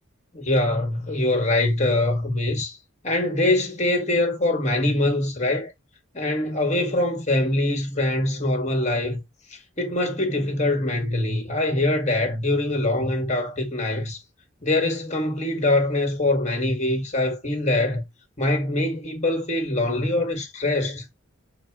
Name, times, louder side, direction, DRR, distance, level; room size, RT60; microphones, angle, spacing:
voice 1, 0.3-2.8 3.0-5.7 6.1-9.2 9.5-14.2 14.6-18.0 18.4-21.1, left 2 dB, 35° left, 2.2 m, -23 dB
7.9 x 4.4 x 4.9 m
head